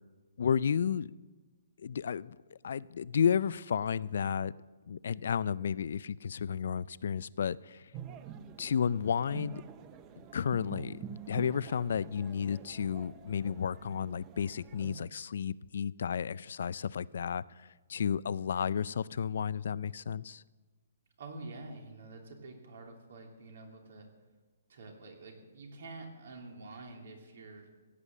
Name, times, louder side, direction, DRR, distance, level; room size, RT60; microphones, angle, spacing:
voice 1, 0.4-1.1 1.8-2.4 2.6-4.5 4.9-7.9 8.6-9.6 10.3-20.4, left 7 dB, 60° left, 20 dB, 0.4 m, -32 dB
sound 1, 7.9-15.1, right 8 dB, 20° right, 0.5 m, -47 dB
voice 2, 21.2-24.1 24.7-27.7, right 2 dB, 65° right, 2 dB, 3.0 m, -47 dB
16.0 x 8.4 x 7.3 m, 1.3 s
hypercardioid pair, 170°, 0 cm